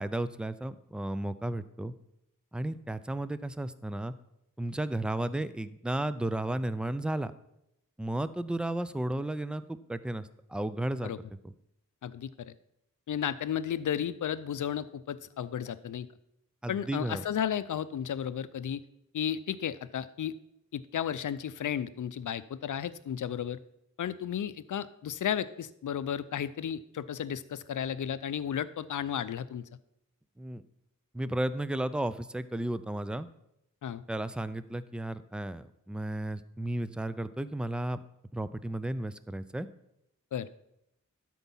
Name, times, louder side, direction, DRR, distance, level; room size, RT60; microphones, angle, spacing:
voice 1, 0.0-1.9 2.5-4.1 4.6-7.3 8.0-11.1 16.6-17.2 30.4-30.6 31.1-33.3 34.1-38.0 38.3-39.7, right 1 dB, 5° right, 14 dB, 0.3 m, -33 dB
voice 2, 12.0-12.5 13.1-16.1 16.7-18.8 19.1-20.3 20.7-23.6 24.0-29.6 33.8-34.0 40.3-40.5, left 9 dB, 65° left, 15 dB, 0.5 m, -33 dB
12.0 x 4.7 x 5.5 m, 0.81 s
wide cardioid pair, 100°, 33 cm